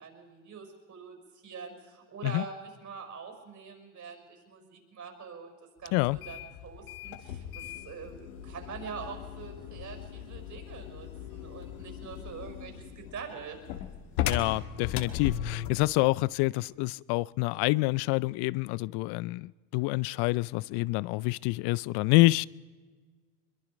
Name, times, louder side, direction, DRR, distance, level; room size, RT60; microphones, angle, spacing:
voice 1, 0.0-5.5 5.8-13.6, right 6 dB, 45° right, 5.9 m, -44 dB
sound 1, 6.0-15.9, left 10 dB, 90° left, 1.6 m, -38 dB
voice 2, 14.2-22.5, left 21 dB, 65° left, 0.6 m, -27 dB
23.0 x 22.5 x 5.1 m
supercardioid pair, 90°, 42 cm